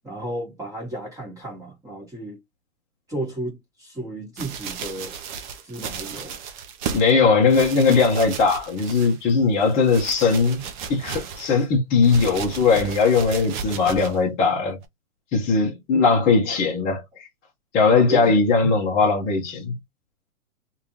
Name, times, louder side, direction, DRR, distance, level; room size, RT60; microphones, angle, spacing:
voice 1, 0.0-2.4 3.1-5.1 5.6-6.3 15.9-16.1 16.5-16.9 17.9-18.3 18.6-18.7, right 1 dB, 10° right, 1.7 m, -33 dB
sound 1, 4.4-7.1 7.5-9.3 9.6-11.6 12.0-14.2 14.8-14.9, right 6 dB, 35° right, 0.7 m, -34 dB
voice 2, 6.9-10.6 10.9-14.8 15.3-17.0 17.7-19.7, left 4 dB, 20° left, 1.0 m, -19 dB
3.3 x 2.7 x 2.9 m
hypercardioid pair, 145°, 43 cm